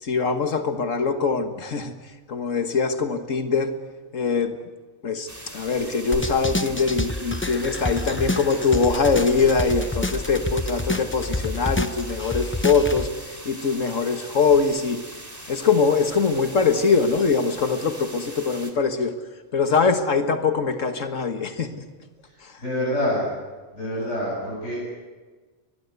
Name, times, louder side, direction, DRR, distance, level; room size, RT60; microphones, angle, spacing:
voice 1, 0.0-1.9 2.3-3.7 4.1-4.6 5.0-15.0 15.5-19.1 19.5-21.8 22.4-22.5, left 5 dB, 85° left, 7 dB, 1.9 m, -22 dB
sound 1, 5.3-18.7, right 1 dB, 15° right, 3.2 m, -41 dB
sound 2, 6.1-13.1, left 2 dB, 10° left, 0.7 m, -28 dB
voice 2, 22.3-23.3 23.7-24.8, left 1 dB, 70° left, -6 dB, 7.8 m, -27 dB
22.5 x 22.5 x 8.2 m, 1.3 s
omnidirectional pair, 1.3 m